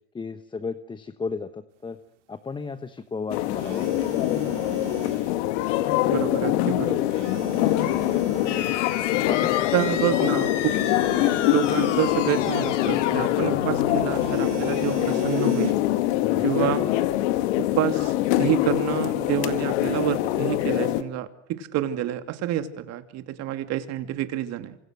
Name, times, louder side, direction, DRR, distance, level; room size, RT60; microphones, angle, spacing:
voice 1, 0.1-2.0 2.3-3.9 7.8-8.0 9.3-9.7 16.2-16.5, left 4 dB, 15° left, 11 dB, 1.1 m, -34 dB
sound 1, 3.3-21.0, left 15 dB, 65° left, 2.2 m, -24 dB
sound 2, 3.6-5.3 7.1-8.8 10.6-12.4 14.2-15.7, right 14 dB, 90° right, 2.4 m, -38 dB
voice 2, 6.0-7.1 9.7-10.9 11.5-15.8 16.4-16.8 17.6-24.8, right 12 dB, 45° right, 9 dB, 2.9 m, -28 dB
sound 3, 8.5-15.0, left 9 dB, 80° left, 3.2 m, -32 dB
28.0 x 26.0 x 6.5 m, 0.73 s
supercardioid pair, 120°, 35 cm